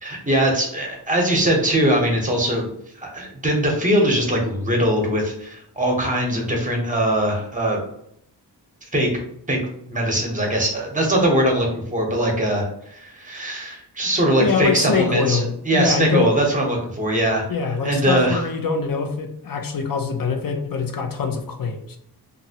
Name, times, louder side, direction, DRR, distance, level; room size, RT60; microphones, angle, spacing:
voice 1, 0.0-2.7 3.0-7.8 8.9-9.1 9.5-9.6 9.9-17.4 17.8-18.4, right 1 dB, 20° right, 0 dB, 0.8 m, -21 dB
voice 2, 14.4-16.3 17.5-22.0, left 5 dB, 55° left, 5 dB, 0.5 m, -24 dB
2.8 x 2.5 x 2.8 m, 0.71 s
wide cardioid pair, 85°, 41 cm